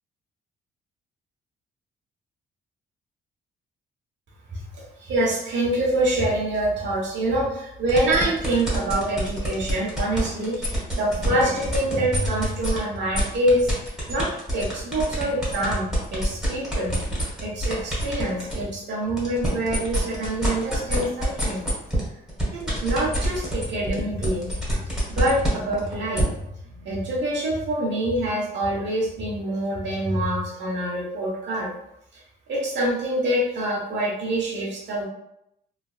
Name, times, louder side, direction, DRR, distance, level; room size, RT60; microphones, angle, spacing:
voice 1, 4.7-13.7 14.1-14.3 14.5-16.9 17.4-21.6 22.5-24.5 25.1-26.3 26.7-31.7 32.5-35.1, right 1 dB, 65° right, -4 dB, 1.2 m, -25 dB
sound 1, 7.9-12.8 13.1-18.6 19.0-26.2, equal, ahead, 1.4 m, -27 dB
3.3 x 2.3 x 2.4 m, 0.82 s
cardioid pair, 90°, 20 cm